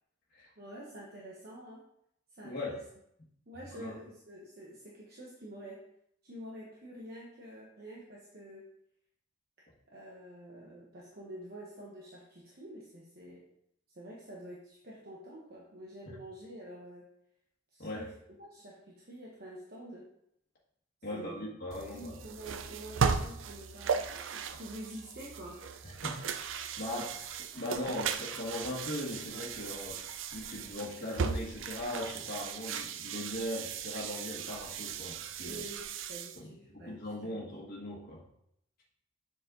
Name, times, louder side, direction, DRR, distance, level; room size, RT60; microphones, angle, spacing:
voice 1, 0.6-1.9 2.4-2.8 3.5-5.8 6.2-8.7 9.9-13.5 13.9-17.1 17.7-20.1 21.1-21.5 21.8-24.1 24.5-25.6 35.5-37.3, right 1 dB, 50° right, -4 dB, 1.2 m, -47 dB
voice 2, 2.4-2.8 3.7-3.9 16.1-16.2 17.8-18.0 21.0-22.1 26.0-35.6 36.4-38.2, left 1 dB, 50° left, -6 dB, 1.7 m, -39 dB
sound 1, 21.7-36.4, right 6 dB, 75° right, 0.5 m, -37 dB
7.5 x 4.1 x 3.9 m, 0.73 s
head